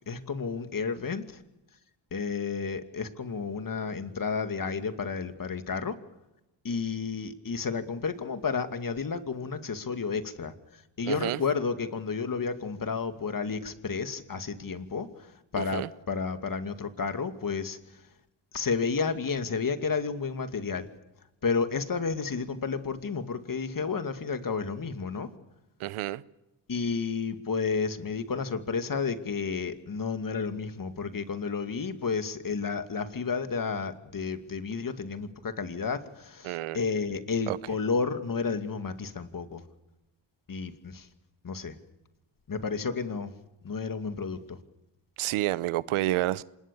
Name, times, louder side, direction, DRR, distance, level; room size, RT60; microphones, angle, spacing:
voice 1, 0.1-1.4 2.1-5.9 6.6-18.0 18.5-20.9 21.4-25.3 26.7-39.6 40.5-41.1 41.4-41.8 42.5-43.4 43.6-44.6, left 5 dB, 40° left, 2.5 m, -31 dB
voice 2, 11.1-11.4 15.6-15.9 25.8-26.2 36.4-36.8 37.5-37.6 45.2-46.4, right 15 dB, 85° right, 0.9 m, -29 dB
26.0 x 21.0 x 7.1 m
cardioid pair, 70°, 49 cm